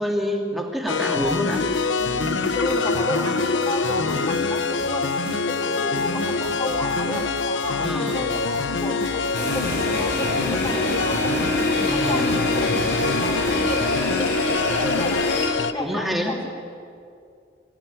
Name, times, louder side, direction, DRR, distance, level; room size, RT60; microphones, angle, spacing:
voice 1, 0.0-1.6 7.8-8.4 11.8-12.5 15.8-16.3, equal, ahead, 0 dB, 2.6 m, -27 dB
sound 1, 0.9-15.7, left 4 dB, 80° left, 0.7 m, -25 dB
sound 2, 1.2-13.8, right 2 dB, 65° right, 1.4 m, -38 dB
voice 2, 2.5-11.3 11.9-15.3 15.7-16.4, left 1 dB, 25° left, 0 dB, 2.3 m, -32 dB
sound 3, 9.3-15.5, left 1 dB, 60° left, 5.0 m, -26 dB
23.5 x 16.0 x 9.7 m, 2.4 s
head